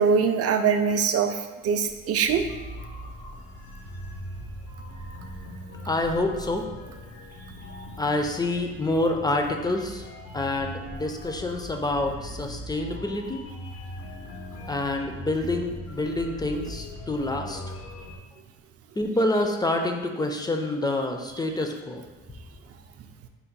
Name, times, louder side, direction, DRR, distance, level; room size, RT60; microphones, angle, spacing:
voice 1, 0.0-2.4, right 6 dB, 55° right, 7 dB, 0.4 m, -23 dB
sound 1, 2.2-18.2, left 1 dB, 90° left, 0.8 m, -40 dB
voice 2, 5.9-6.6 8.0-10.1 10.3-13.5 14.7-17.6 19.0-22.0, left 2 dB, 15° left, 4 dB, 0.3 m, -27 dB
4.4 x 2.2 x 3.9 m, 1.2 s
cardioid pair, 90°, 30 cm